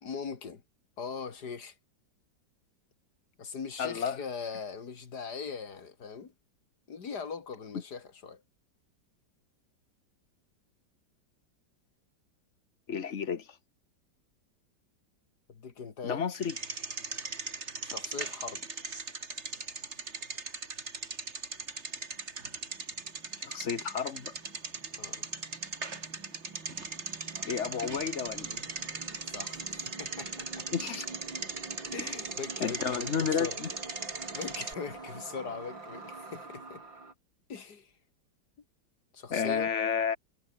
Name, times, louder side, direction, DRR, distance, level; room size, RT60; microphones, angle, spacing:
voice 1, 0.0-0.6 1.0-1.8 3.4-6.3 6.9-8.4 15.5-16.2 17.8-18.6 25.0-25.3 29.3-30.3 30.6-30.7 31.9-33.6 34.0-36.8 37.5-37.9 39.1-39.7, left 5 dB, 60° left, 2.6 m, -40 dB
voice 2, 3.8-4.2 12.9-13.5 16.0-16.5 23.4-24.3 27.4-28.6 30.7-31.1 32.6-33.7 39.3-40.2, left 7 dB, 40° left, 1.5 m, -31 dB
Bicycle, 16.4-34.7, right 4 dB, 35° right, 2.5 m, -39 dB
sound 1, 21.9-37.1, right 3 dB, 85° right, 5.6 m, -47 dB
sound 2, 27.4-35.2, equal, ahead, 7.0 m, -60 dB
omnidirectional pair, 2.0 m